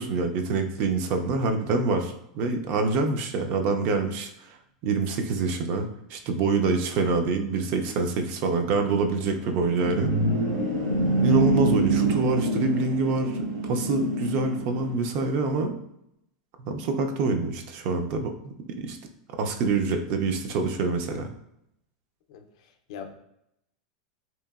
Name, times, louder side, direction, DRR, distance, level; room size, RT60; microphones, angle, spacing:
voice 1, 0.0-4.3 4.8-10.1 11.2-15.7 16.6-19.0 19.4-21.3, right 4 dB, 45° right, 6 dB, 0.3 m, -26 dB
sound 1, 9.4-15.0, right 2 dB, 60° right, 0.8 m, -26 dB
voice 2, 22.3-23.2, left 6 dB, 65° left, 6 dB, 0.4 m, -42 dB
2.8 x 2.5 x 2.3 m, 0.79 s
supercardioid pair, 155°, 4 cm